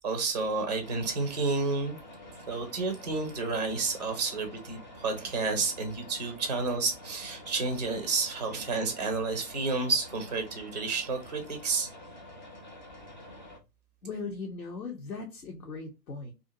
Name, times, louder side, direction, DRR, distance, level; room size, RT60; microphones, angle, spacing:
voice 1, 0.0-2.0 2.5-11.9, right 3 dB, 30° right, 0.4 m, -30 dB
sound 1, 0.8-13.6, left 1 dB, 30° left, 0.4 m, -48 dB
voice 2, 14.0-16.3, left 4 dB, 75° left, 0.9 m, -38 dB
2.5 x 2.5 x 2.5 m
figure-of-eight pair, 120°, 50 cm